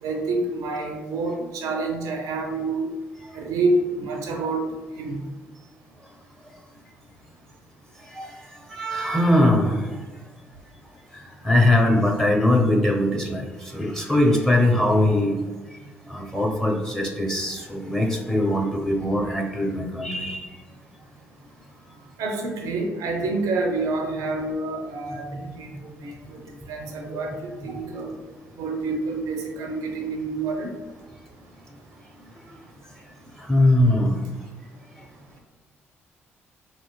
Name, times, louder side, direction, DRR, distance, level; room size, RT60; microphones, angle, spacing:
voice 1, 0.0-2.9 3.3-4.7 5.0-5.3 22.2-25.7 26.0-26.4 26.7-28.1 28.6-30.7, right 3 dB, 55° right, 2 dB, 0.4 m, -27 dB
voice 2, 8.0-10.0 11.1-15.4 15.7-15.8 16.1-20.6 25.3-25.5 27.1-27.2 27.7-28.2 32.5-32.6 33.4-34.2, left 1 dB, 5° left, 0 dB, 0.7 m, -22 dB
3.1 x 2.9 x 2.2 m, 1.3 s
figure-of-eight pair, 45°, 7 cm